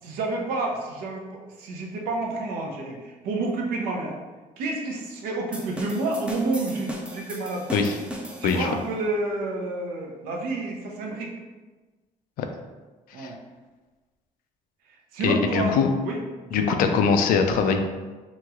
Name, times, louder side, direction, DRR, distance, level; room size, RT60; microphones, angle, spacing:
voice 1, 0.0-4.2 4.6-7.8 8.4-11.3 13.1-13.4 14.9-15.7 16.0-16.8, right 2 dB, 85° right, 0 dB, 0.6 m, -29 dB
sound 1, 5.5-8.9, right 1 dB, 5° right, 0.4 m, -37 dB
voice 2, 15.2-15.9 16.5-17.8, left 5 dB, 75° left, 6 dB, 0.4 m, -22 dB
3.0 x 2.9 x 2.3 m, 1.3 s
cardioid pair, 100°, 15 cm